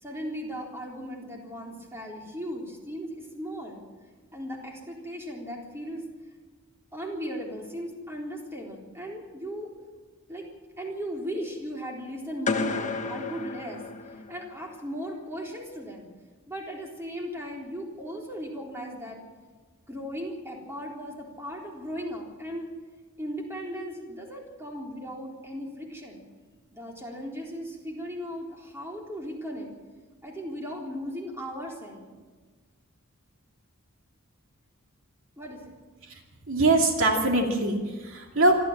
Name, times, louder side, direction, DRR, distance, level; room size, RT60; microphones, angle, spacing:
voice 1, 0.0-3.8 4.3-6.0 6.9-9.7 10.3-10.5 10.8-13.8 14.3-16.1 16.5-19.2 19.9-22.7 23.2-26.2 26.7-29.7 30.2-32.1 35.4-35.6, equal, 10° right, -1 dB, 3.8 m, -37 dB
sound 1, 12.5-14.6, left 4 dB, 35° left, 1.4 m, -32 dB
voice 2, 36.5-38.6, right 2 dB, 65° right, 1 dB, 2.8 m, -22 dB
26.0 x 13.5 x 7.5 m, 1.4 s
head